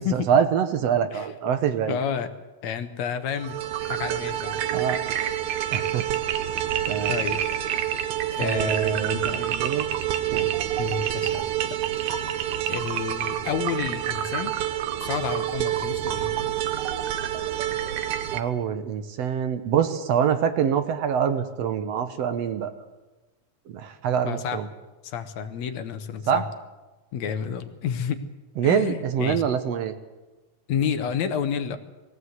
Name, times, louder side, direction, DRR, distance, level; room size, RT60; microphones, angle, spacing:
voice 1, 0.0-2.0 4.7-5.0 5.7-6.1 6.9-7.1 8.4-9.9 10.3-10.5 18.3-22.7 23.7-24.7 26.3-26.4 28.6-30.0, right 8 dB, 70° right, 10 dB, 1.9 m, -25 dB
voice 2, 1.9-2.3 2.6-3.6 3.8-4.6 7.1-7.4 8.3-9.4 10.8-11.4 11.7-11.8 12.1-14.6 15.0-16.3 24.2-24.6 25.0-26.4 27.1-28.2 28.6-29.4 30.7-31.8, left 8 dB, 70° left, 9 dB, 2.3 m, -30 dB
sound 1, 3.3-18.4, right 11 dB, 85° right, 2.4 m, -27 dB
20.5 x 16.0 x 8.0 m, 1.2 s
omnidirectional pair, 3.3 m